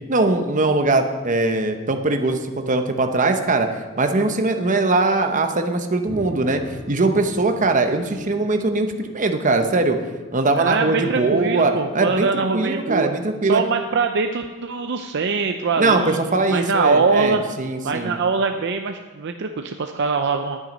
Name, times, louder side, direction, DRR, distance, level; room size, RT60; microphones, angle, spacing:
voice 1, 0.1-2.4 2.7-3.7 4.0-6.6 6.9-10.0 10.3-13.6 15.8-18.1, right 2 dB, 35° right, 6 dB, 0.9 m, -21 dB
sound 1, 6.0-10.7, equal, 20° left, 2.5 m, -42 dB
voice 2, 10.6-13.1 13.4-16.2 16.5-17.4 17.8-20.6, right 4 dB, 55° right, 5 dB, 0.5 m, -22 dB
11.0 x 9.1 x 5.2 m, 1.3 s
head